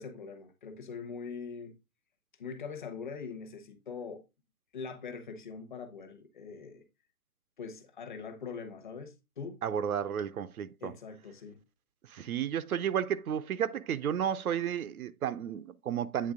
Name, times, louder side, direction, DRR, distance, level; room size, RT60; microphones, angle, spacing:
voice 1, 0.0-1.8 2.4-4.2 4.7-6.9 7.6-9.6 10.8-11.6, left 5 dB, 35° left, 0.9 m, -42 dB
voice 2, 9.6-10.9 12.1-16.3, right 9 dB, 75° right, 0.7 m, -32 dB
8.7 x 3.3 x 3.6 m
hypercardioid pair, 170°, 43 cm